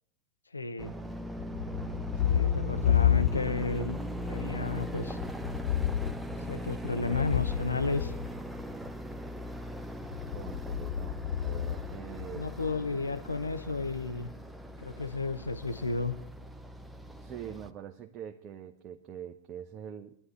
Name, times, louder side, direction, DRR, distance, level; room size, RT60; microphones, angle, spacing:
voice 1, 0.5-1.0 2.2-4.0 4.3-5.2 6.5-8.1 12.3-14.3 14.8-16.2, left 3 dB, 80° left, 0.8 m, -32 dB
sound 1, 0.8-17.7, equal, 5° right, 0.8 m, -40 dB
Thunder, 1.3-3.8 4.1-8.9 10.0-12.6, left 10 dB, 55° left, 7.0 m, -31 dB
voice 2, 2.1-2.8 10.3-12.5 17.2-20.2, right 9 dB, 35° right, 0.9 m, -44 dB
24.5 x 11.0 x 3.1 m
figure-of-eight pair, 90°, 0 cm